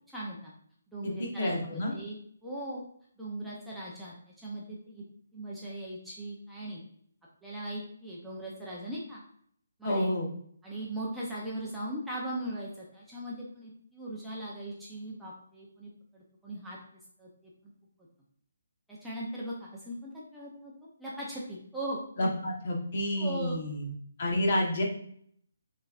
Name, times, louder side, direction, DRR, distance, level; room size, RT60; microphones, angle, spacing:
voice 1, 0.1-0.5 0.9-2.8 3.2-5.0 5.3-6.8 7.4-9.2 9.8-10.1 10.6-16.8 17.2-17.5 18.9-20.7 21.0-22.3 23.2-23.6, right 1 dB, ahead, -7 dB, 0.6 m, -39 dB
voice 2, 1.4-1.9 9.8-10.3 22.2-23.9 24.2-24.8, left 1 dB, 45° left, -1 dB, 1.2 m, -29 dB
6.0 x 3.3 x 2.5 m, 0.63 s
hypercardioid pair, 165°, 0 cm